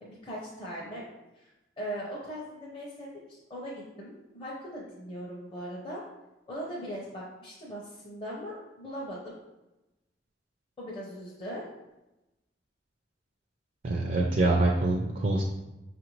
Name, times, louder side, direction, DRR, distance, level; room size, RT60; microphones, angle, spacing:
voice 1, 0.0-1.0 1.4-1.5 1.8-6.0 6.5-9.4 10.8-11.6, equal, 30° left, -6 dB, 0.7 m, -39 dB
voice 2, 13.8-15.4, right 2 dB, 45° right, 0 dB, 0.4 m, -25 dB
5.4 x 2.5 x 3.0 m, 0.99 s
head